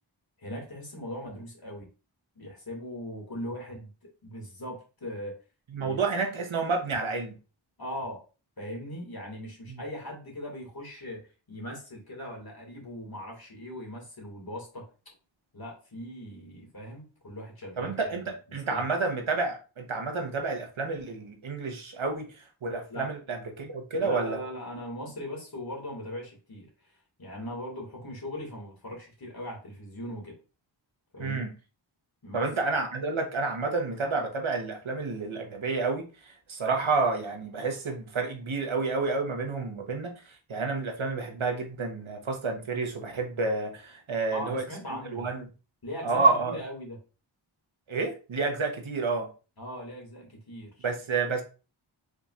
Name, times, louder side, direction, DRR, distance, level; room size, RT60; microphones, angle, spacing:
voice 1, 0.4-1.9 2.4-3.9 4.2-5.3 5.8-6.0 7.8-8.2 8.6-11.2 11.5-14.8 15.5-18.1 18.7-18.8 22.9-23.1 24.0-26.7 27.2-30.3 31.1-31.4 32.2-32.5 44.3-45.3 45.8-47.0 49.6-50.9, equal, 45° left, 2.3 m, -39 dB
voice 2, 5.7-7.4 9.7-9.8 17.8-24.4 31.2-31.5 32.3-44.6 45.1-45.4 46.0-46.6 47.9-49.3 50.8-51.4, right 4 dB, 70° right, 1.1 m, -29 dB
5.1 x 4.2 x 2.5 m
wide cardioid pair, 70°, 49 cm